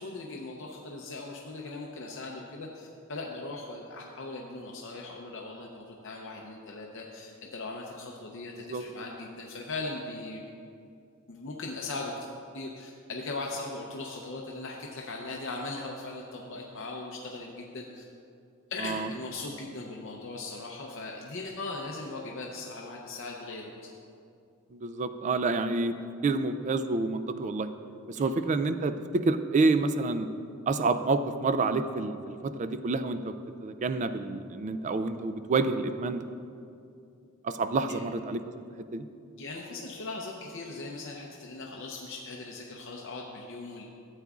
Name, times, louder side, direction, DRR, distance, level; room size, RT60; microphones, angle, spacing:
voice 1, 0.0-10.4 11.3-18.0 18.7-23.9 28.1-28.4 37.9-38.1 39.4-43.9, left 3 dB, 60° left, -1 dB, 0.7 m, -39 dB
voice 2, 24.7-26.0 26.2-27.7 28.1-30.3 30.7-33.3 33.6-36.2 37.4-38.4 38.9-39.0, right 3 dB, 35° right, 10 dB, 0.3 m, -28 dB
13.0 x 8.1 x 2.4 m, 2.5 s
head